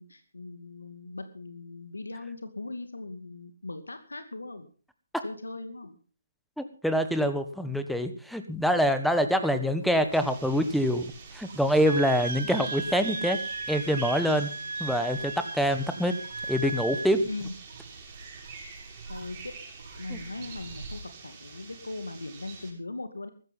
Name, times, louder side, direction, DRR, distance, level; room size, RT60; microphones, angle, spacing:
voice 1, 0.0-4.7 5.2-6.0 17.2-17.5 19.1-19.5 20.0-23.3, left 2 dB, 90° left, 9 dB, 2.4 m, -39 dB
voice 2, 6.6-13.4 13.7-14.5 14.8-16.2 16.5-17.3 20.1-20.2, equal, ahead, 9 dB, 1.3 m, -25 dB
sound 1, 9.8-21.1, right 3 dB, 55° right, 6.3 m, -50 dB
sound 2, 10.1-22.7, right 4 dB, 25° right, 6.3 m, -46 dB
Wind instrument woodwind instrument, 11.8-17.2, right 2 dB, 85° right, 0.7 m, -36 dB
14.5 x 14.0 x 5.5 m, 0.40 s
figure-of-eight pair, 150°, 0 cm